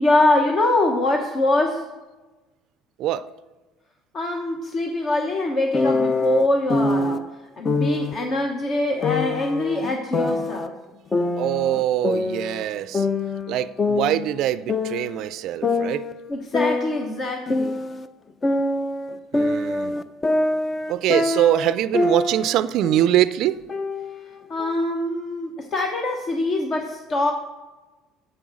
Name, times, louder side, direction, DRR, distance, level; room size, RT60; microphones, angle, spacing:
voice 1, 0.0-1.9 4.1-7.2 7.6-10.7 16.3-17.7 24.5-27.3, left 2 dB, 40° left, 2 dB, 1.0 m, -23 dB
sound 1, 5.7-7.2 7.7-8.2 9.0-10.7 11.1-12.7 12.9-15.2 15.6-18.1 18.4-22.5 22.8-23.2 23.7-24.7, left 2 dB, 25° left, 0.5 m, -24 dB
voice 2, 11.4-13.1 13.5-16.0 19.3-20.0 20.9-23.5, right 12 dB, 60° right, 15 dB, 0.4 m, -23 dB
7.8 x 7.8 x 6.2 m, 1.1 s
cardioid pair, 120°, 0 cm